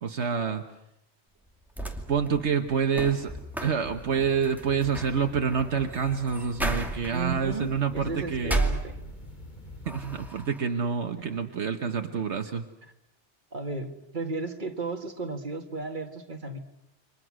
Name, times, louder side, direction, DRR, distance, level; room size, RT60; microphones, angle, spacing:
voice 1, 0.0-0.6 2.1-3.3 3.6-8.6 9.9-12.6, right 6 dB, 70° right, 6 dB, 1.4 m, -27 dB
sound 1, 1.5-9.4 9.8-10.6, right 2 dB, ahead, 2.4 m, -34 dB
sound 2, 4.1-10.3, left 1 dB, 40° left, 4.2 m, -45 dB
voice 2, 7.1-9.0 11.2-11.4 13.5-16.6, right 3 dB, 45° right, 4 dB, 2.1 m, -34 dB
29.0 x 25.0 x 6.3 m, 0.82 s
omnidirectional pair, 1.2 m